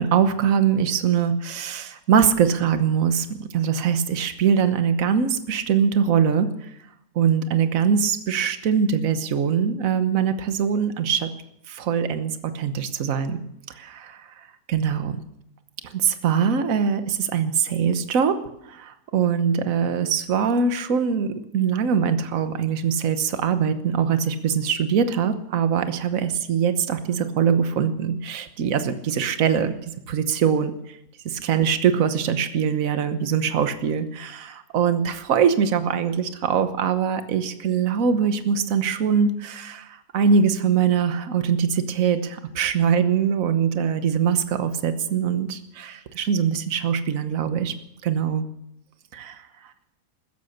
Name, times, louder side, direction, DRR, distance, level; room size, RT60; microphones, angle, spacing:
voice 1, 0.0-6.7 7.1-11.3 11.7-13.4 13.8-14.3 14.7-15.2 15.9-18.4 18.7-31.0 31.2-47.7 48.0-48.5 49.1-49.3, right 7 dB, 60° right, 10 dB, 1.4 m, -22 dB
15.5 x 13.5 x 6.6 m, 0.80 s
omnidirectional pair, 1.7 m